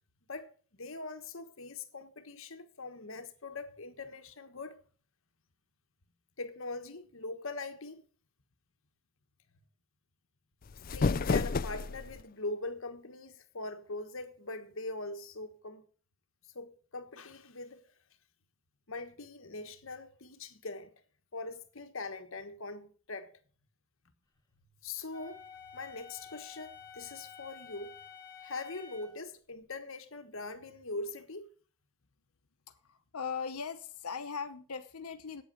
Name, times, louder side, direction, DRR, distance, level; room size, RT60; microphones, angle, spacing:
voice 1, 0.3-4.8 6.4-8.0 10.9-15.8 16.5-17.8 18.9-20.9 21.3-23.3 24.8-28.0 28.4-31.5, left 3 dB, 65° left, 1.3 m, -42 dB
sound 1, 10.6-12.2, left 4 dB, 40° left, 0.4 m, -30 dB
Wind instrument woodwind instrument, 25.1-29.2, left 7 dB, 20° left, 2.4 m, -50 dB
voice 2, 32.7-35.4, left 6 dB, 85° left, 0.9 m, -39 dB
8.9 x 8.1 x 7.7 m
head